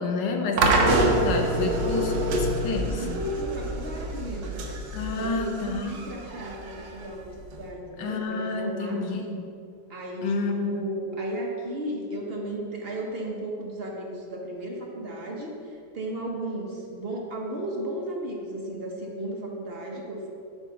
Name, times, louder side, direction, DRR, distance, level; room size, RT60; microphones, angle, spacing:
voice 1, 0.0-3.1 4.9-6.1 8.0-9.4 10.2-10.9, left 3 dB, 80° left, 3 dB, 1.5 m, -30 dB
sound 1, 0.6-7.6, right 2 dB, 85° right, 1.6 m, -26 dB
voice 2, 2.9-4.7 5.1-9.4 9.9-20.3, right 1 dB, 45° right, -1 dB, 0.8 m, -34 dB
8.8 x 3.6 x 6.9 m, 2.5 s
omnidirectional pair, 1.9 m